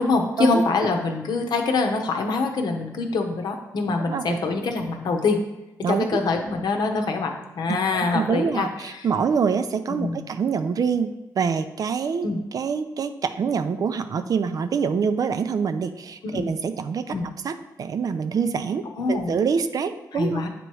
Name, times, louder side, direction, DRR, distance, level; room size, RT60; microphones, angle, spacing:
voice 1, 0.0-5.4 5.9-9.1 9.9-10.2 12.2-12.4 16.2-16.5 17.1-17.3 19.0-19.4 20.1-20.5, left 3 dB, 75° left, 4 dB, 0.8 m, -24 dB
voice 2, 4.1-4.4 5.8-6.0 7.7-17.0 17.4-20.4, right 6 dB, 55° right, 10 dB, 0.4 m, -25 dB
7.7 x 3.0 x 4.7 m, 1.0 s
cardioid pair, 90°, 7 cm